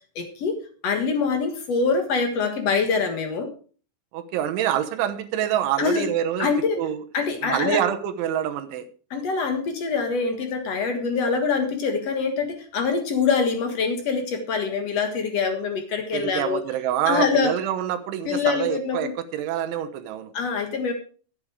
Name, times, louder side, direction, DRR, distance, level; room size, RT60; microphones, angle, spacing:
voice 1, 0.1-0.6 0.8-3.5 5.8-6.1 6.4-6.8 7.1-7.8 9.1-16.6 17.0-17.5 18.2-19.1 20.3-20.9, left 5 dB, 70° left, 6 dB, 1.5 m, -24 dB
voice 2, 4.1-6.5 6.8-7.0 7.4-8.9 16.1-20.3, right 10 dB, 80° right, 7 dB, 3.3 m, -26 dB
13.5 x 9.2 x 4.8 m, 0.40 s
omnidirectional pair, 5.5 m